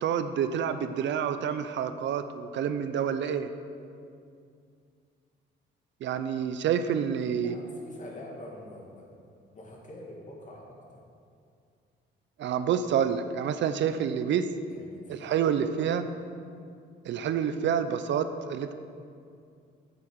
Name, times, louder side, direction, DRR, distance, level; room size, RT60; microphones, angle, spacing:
voice 1, 0.0-3.5 6.0-7.5 12.4-14.5 15.1-16.1 17.0-18.7, right 8 dB, 65° right, 10 dB, 0.6 m, -28 dB
voice 2, 7.4-9.1 9.5-11.0 14.7-15.5, left 1 dB, 40° left, -1 dB, 2.0 m, -46 dB
8.1 x 7.6 x 4.6 m, 2.4 s
cardioid pair, 90°, 20 cm